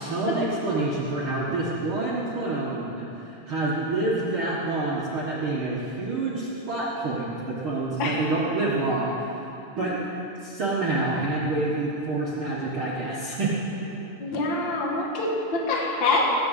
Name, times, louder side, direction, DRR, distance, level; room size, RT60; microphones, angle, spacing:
voice 1, 0.0-9.3 9.8-10.0 10.4-13.5, right 2 dB, 75° right, -7 dB, 1.2 m, -27 dB
voice 2, 14.2-16.3, left 2 dB, 65° left, -2 dB, 1.1 m, -25 dB
18.5 x 6.8 x 8.2 m, 2.9 s
omnidirectional pair, 5.0 m